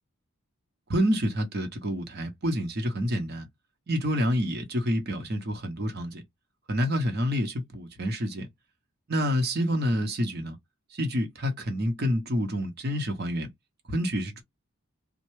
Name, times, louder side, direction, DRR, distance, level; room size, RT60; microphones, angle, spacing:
voice 1, 0.9-3.5 3.9-6.2 6.7-8.5 9.1-10.6 10.9-13.5 13.9-14.4, equal, 45° right, 0.8 m, -28 dB
3.2 x 2.2 x 3.1 m
head